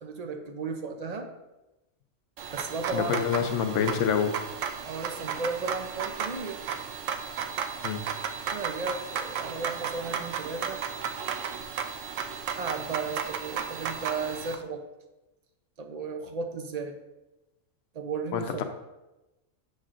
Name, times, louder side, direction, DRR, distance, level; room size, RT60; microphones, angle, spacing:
voice 1, 0.0-1.3 2.5-3.5 4.9-6.6 8.5-10.8 12.6-14.8 15.8-17.0 17.9-18.6, right 4 dB, 50° right, 5 dB, 0.4 m, -35 dB
sound 1, 2.4-14.5, right 7 dB, 70° right, 0.9 m, -34 dB
voice 2, 2.9-4.3 7.8-8.0 18.3-18.6, left 7 dB, 65° left, 6 dB, 0.9 m, -27 dB
7.4 x 6.5 x 2.5 m, 1.0 s
omnidirectional pair, 1.4 m